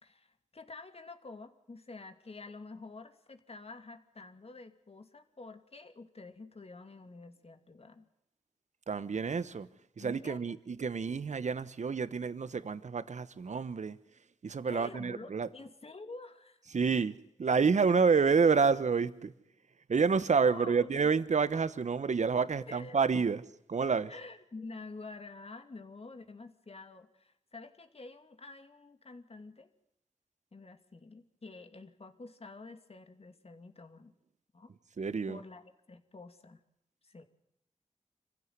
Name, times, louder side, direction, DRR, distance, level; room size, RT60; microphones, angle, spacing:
voice 1, 0.0-8.1 10.0-10.6 14.7-16.6 20.3-21.2 22.7-23.0 24.1-29.7 30.5-34.1 34.5-34.7 35.0-36.6 37.0-37.2, left 3 dB, 55° left, 2.6 m, -49 dB
voice 2, 8.9-9.7 10.0-14.0 14.4-15.5 16.7-19.3 19.9-23.4 23.7-24.1 35.0-35.4, right 5 dB, 75° right, 1.1 m, -28 dB
26.0 x 15.5 x 9.5 m
wide cardioid pair, 55°, 12 cm